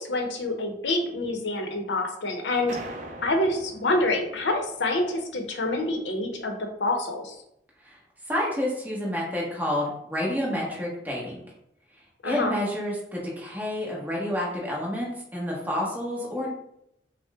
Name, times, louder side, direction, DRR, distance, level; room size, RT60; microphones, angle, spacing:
voice 1, 0.0-2.8 3.2-7.3 12.2-12.6, left 2 dB, 90° left, 4 dB, 0.7 m, -27 dB
sound 1, 2.7-5.1, right 1 dB, 45° right, 0.5 m, -42 dB
voice 2, 8.3-11.4 12.2-16.5, left 1 dB, 10° right, -4 dB, 1.1 m, -29 dB
5.4 x 2.1 x 3.5 m, 0.78 s
head